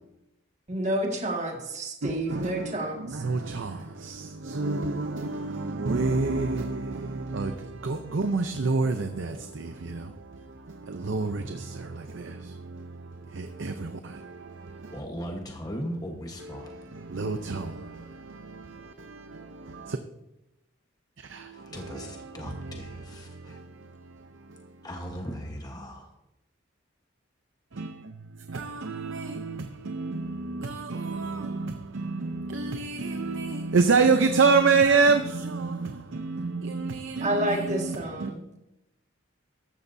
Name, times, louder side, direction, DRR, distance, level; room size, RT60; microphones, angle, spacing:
voice 1, 0.7-3.2 37.2-38.5, right 1 dB, 35° right, 1.9 m, -29 dB
voice 2, 2.0-15.0 16.5-20.0 21.3-24.7 27.8-27.9 28.5-38.3, right 4 dB, 70° right, 0.7 m, -29 dB
voice 3, 14.9-16.7 21.5-23.6 24.8-26.1, equal, 20° left, 1.2 m, -38 dB
14.0 x 12.5 x 2.7 m
head